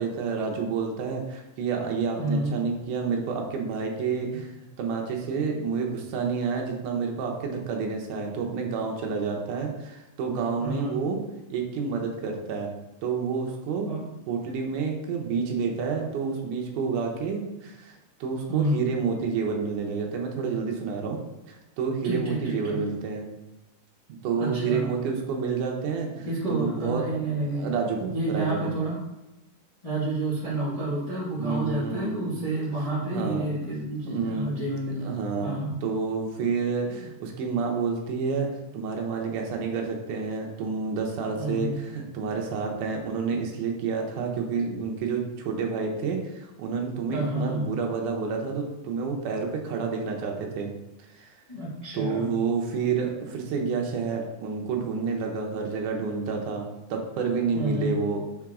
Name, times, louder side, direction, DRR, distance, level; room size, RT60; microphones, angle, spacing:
voice 1, 0.0-11.2 11.5-12.7 13.0-13.9 14.3-17.9 18.2-21.2 21.5-23.3 24.2-28.7 31.3-32.1 33.1-33.5 34.1-34.6 34.9-50.7 51.1-51.3 51.9-58.2, right 5 dB, 75° right, 1 dB, 2.2 m, -29 dB
voice 2, 2.2-2.6 10.6-10.9 13.8-14.0 18.5-18.8 22.0-22.8 24.4-24.9 26.2-27.7 28.1-29.0 29.8-35.0 35.4-35.7 41.4-41.7 47.1-47.6 51.5-52.3 57.5-57.9, right 2 dB, 60° left, -9 dB, 0.3 m, -29 dB
6.0 x 4.5 x 3.6 m, 0.98 s
omnidirectional pair, 3.9 m